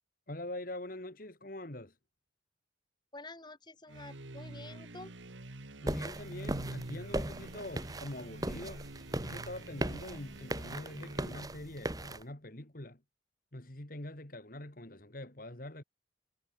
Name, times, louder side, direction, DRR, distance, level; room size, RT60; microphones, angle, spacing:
voice 1, 0.3-2.0 5.8-8.9 9.2-13.0 13.5-15.8, left 1 dB, 50° left, 2.4 m, -44 dB
voice 2, 3.1-5.1, left 2 dB, 25° left, 4.3 m, -49 dB
sound 1, 3.9-11.7, right 2 dB, 85° right, 1.8 m, -47 dB
sound 2, 5.9-12.2, right 1 dB, 20° right, 1.5 m, -39 dB
head